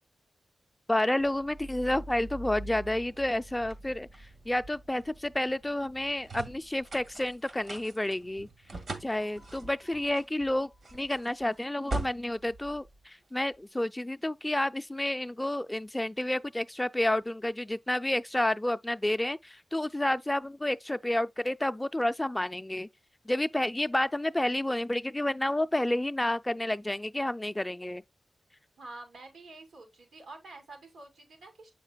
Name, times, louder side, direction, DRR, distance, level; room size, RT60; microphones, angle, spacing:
voice 1, 0.9-8.5 9.0-22.9 23.3-28.0, left 1 dB, 15° left, 0.4 m, -30 dB
sound 1, 1.2-13.6, right 2 dB, 65° right, 1.7 m, -43 dB
voice 2, 28.8-31.7, right 2 dB, 85° right, 2.5 m, -48 dB
7.3 x 5.7 x 2.2 m
cardioid pair, 45°, 0 cm